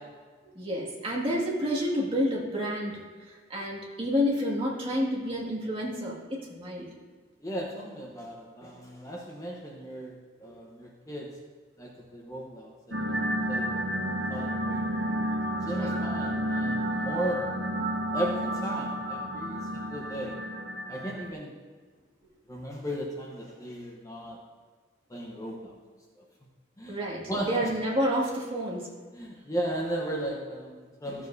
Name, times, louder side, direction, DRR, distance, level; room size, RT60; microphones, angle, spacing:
voice 1, 0.6-6.9 10.4-10.5 15.7-15.9 26.9-28.9, equal, 30° right, -4 dB, 2.0 m, -29 dB
voice 2, 7.4-11.4 11.8-15.0 15.6-17.6 18.1-20.4 20.9-21.5 22.5-24.4 25.1-25.7 26.8-27.0 27.3-27.7 29.1-31.3, right 1 dB, 15° left, -1 dB, 0.9 m, -36 dB
sound 1, 12.9-21.3, right 1 dB, 65° right, 1.0 m, -31 dB
14.0 x 7.4 x 2.7 m, 1.5 s
head